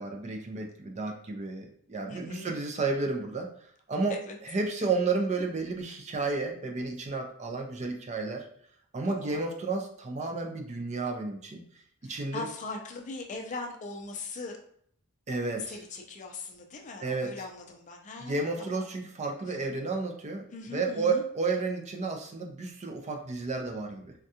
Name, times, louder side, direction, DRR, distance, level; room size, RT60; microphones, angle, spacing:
voice 1, 0.0-3.5 3.9-8.5 8.9-11.6 12.0-12.5 15.3-15.8 17.0-17.3 18.2-24.1, right 3 dB, 30° right, 2 dB, 0.4 m, -32 dB
voice 2, 2.1-2.5 4.3-4.4 9.1-9.4 12.0-14.6 15.6-18.9 19.5-19.6 20.5-21.2, left 3 dB, 35° left, 2 dB, 0.4 m, -40 dB
3.5 x 2.2 x 2.7 m, 0.65 s
head